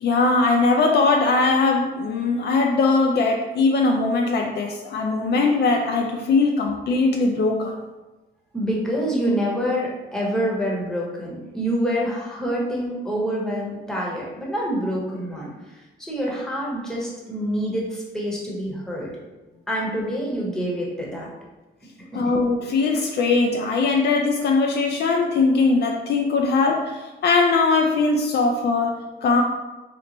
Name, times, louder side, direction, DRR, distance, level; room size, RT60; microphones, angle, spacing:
voice 1, 0.0-7.8 22.1-29.4, left 3 dB, 55° left, 2 dB, 0.4 m, -20 dB
voice 2, 8.5-15.5 16.0-19.1 19.7-21.3 22.1-22.3, equal, 5° left, -4 dB, 1.0 m, -26 dB
3.0 x 2.1 x 3.9 m, 1.1 s
cardioid pair, 90°, 20 cm